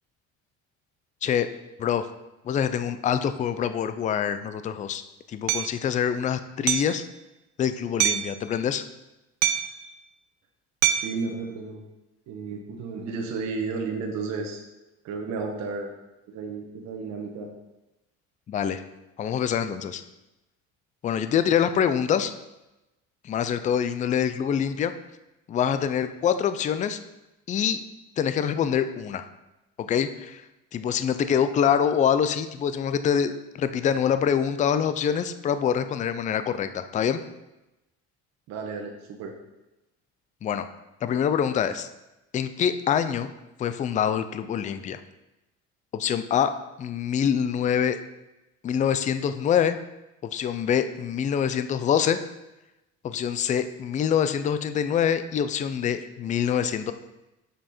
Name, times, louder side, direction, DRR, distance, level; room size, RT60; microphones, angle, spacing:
voice 1, 2.4-5.0 5.3-7.0 7.6-8.8 18.5-18.8 19.2-20.0 21.0-22.3 23.2-24.9 25.5-27.0 27.5-27.8 28.2-29.2 29.8-30.4 30.7-37.2 40.4-40.7 41.0-41.9 42.3-43.3 43.6-45.0 45.9-48.0 48.6-49.8 50.3-52.2 53.0-56.9, left 8 dB, 25° left, 11 dB, 0.4 m, -25 dB
Hammer, 5.5-5.7 6.7-7.0 8.0-8.3 9.4-9.8 10.8-11.2, right 11 dB, 85° right, 0.7 m, -24 dB
voice 2, 11.0-11.9 12.3-14.6 15.0-15.9 16.3-17.5 38.5-39.3, right 4 dB, 65° right, 2 dB, 1.2 m, -33 dB
6.8 x 6.1 x 4.3 m, 0.98 s
cardioid pair, 145°, 30 cm